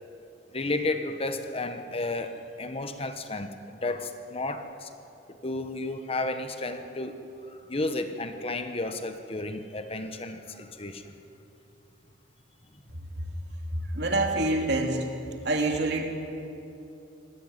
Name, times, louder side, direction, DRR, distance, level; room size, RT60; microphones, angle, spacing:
voice 1, 0.5-2.3 2.6-4.9 5.4-7.2 7.5-11.0, left 2 dB, 30° left, 8 dB, 1.2 m, -32 dB
voice 2, 13.7-15.1 15.4-16.0, right 2 dB, 60° right, 2 dB, 3.1 m, -27 dB
25.0 x 17.5 x 9.3 m, 2.8 s
head